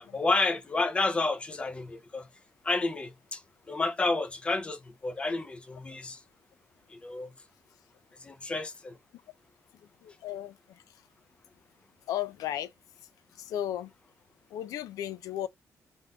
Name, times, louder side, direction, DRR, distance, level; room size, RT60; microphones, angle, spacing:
voice 1, 0.0-2.3 2.6-3.4 3.7-6.2 6.9-7.3 8.2-9.0, left 3 dB, 20° left, 0.5 m, -30 dB
voice 2, 10.0-10.5 12.1-12.7 13.4-13.9 14.5-15.5, left 11 dB, 90° left, 0.4 m, -34 dB
3.6 x 2.5 x 2.3 m
cardioid pair, 160°, 6 cm